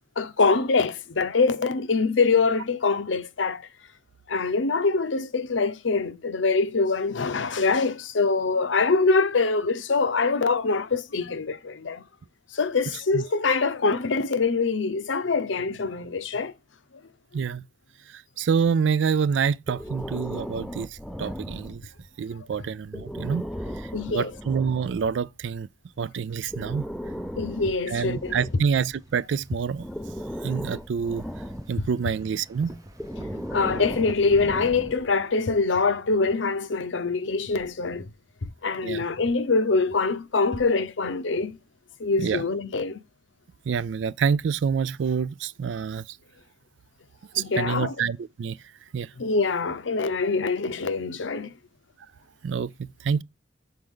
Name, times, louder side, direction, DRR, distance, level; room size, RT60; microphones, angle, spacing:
voice 1, 0.2-3.6 4.3-12.0 12.5-16.5 23.9-24.3 27.4-28.4 33.5-38.1 38.4-41.6 42.0-43.0 47.4-47.9 49.2-51.5, left 4 dB, 80° left, 0.7 m, -24 dB
voice 2, 17.3-17.6 18.1-21.8 22.2-23.4 23.8-25.7 26.0-26.9 27.9-29.9 30.4-31.3 31.7-32.7 38.8-39.0 42.2-42.4 43.7-46.2 47.3-48.6 48.9-49.1 52.4-53.2, right 6 dB, 70° right, 0.4 m, -27 dB
Breathing, 19.7-22.1 22.8-25.2 26.3-29.1 29.7-32.0 32.9-35.2, equal, ahead, 0.4 m, -37 dB
sound 1, 27.9-34.6, right 1 dB, 20° right, 0.8 m, -45 dB
6.4 x 4.5 x 3.6 m
head